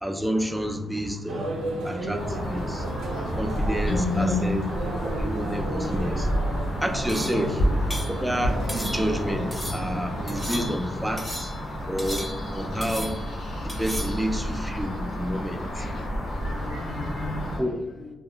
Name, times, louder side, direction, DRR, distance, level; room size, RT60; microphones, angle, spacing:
voice 1, 0.0-1.5 1.8-2.9 3.4-4.6 5.0-6.3 6.8-7.6 8.1-11.5 11.9-13.1 13.6-15.9 17.6-17.8, equal, 5° right, 5 dB, 0.3 m, -29 dB
sound 1, 1.3-10.7, right 1 dB, 85° right, 0.4 m, -33 dB
sound 2, 2.2-17.6, equal, 85° left, 0.9 m, -30 dB
voice 2, 3.9-4.6 7.3-7.6 15.6-17.7 18.0-18.1, left 3 dB, 60° left, 3 dB, 0.4 m, -31 dB
sound 3, 7.1-7.5 7.9-8.2 8.7-9.2 9.5-9.9 10.3-10.9 11.2-11.6 12.0-12.6 12.8-13.3 13.7-14.2, left 1 dB, 15° left, 0.7 m, -36 dB
2.3 x 2.2 x 2.8 m, 1.0 s
supercardioid pair, 50°, 0 cm